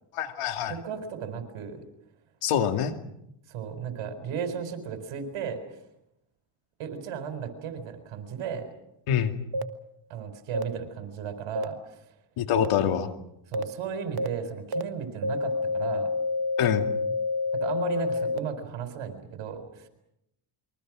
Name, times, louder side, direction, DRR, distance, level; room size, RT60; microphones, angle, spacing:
voice 1, 0.1-0.7 2.4-2.9 9.1-9.4 12.4-13.1 16.6-16.9, left 9 dB, 85° left, 6 dB, 2.4 m, -25 dB
voice 2, 0.7-1.8 3.5-5.6 6.8-8.7 10.1-11.8 13.5-16.1 17.5-19.9, right 7 dB, 90° right, 8 dB, 4.5 m, -35 dB
sound 1, 9.5-9.6 10.5-10.6 11.6-11.7 12.6-12.7 13.5-13.6 14.2-14.3 14.7-14.8 15.2-18.4, left 3 dB, 50° right, 1.6 m, -28 dB
28.5 x 23.5 x 6.2 m, 0.82 s
cardioid pair, 75°, 50 cm